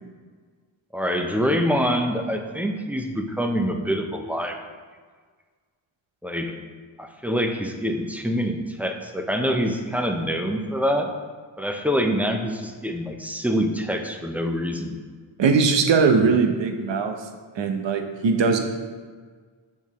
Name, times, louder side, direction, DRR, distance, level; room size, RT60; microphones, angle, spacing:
voice 1, 0.9-4.6 6.2-6.6 7.0-11.1 11.6-15.0, equal, 5° right, 4 dB, 0.7 m, -25 dB
voice 2, 15.4-17.2 17.5-18.6, right 5 dB, 60° right, 5 dB, 0.9 m, -20 dB
6.5 x 5.4 x 3.1 m, 1.5 s
cardioid pair, 45°, 50 cm